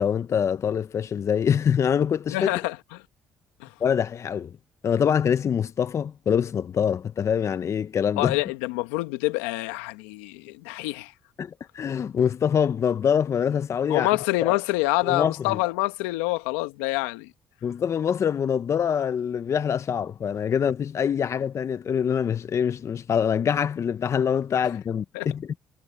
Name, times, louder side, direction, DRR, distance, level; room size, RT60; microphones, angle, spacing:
voice 1, 0.0-2.5 3.8-4.5 4.8-8.4 11.4-14.1 14.4-14.6 15.1-15.6 17.6-25.5, left 8 dB, 50° left, 1.0 m, -24 dB
voice 2, 2.3-3.0 3.6-3.7 8.2-11.1 13.9-17.3 25.1-25.3, left 20 dB, 90° left, 1.5 m, -26 dB
supercardioid pair, 60°, 6 cm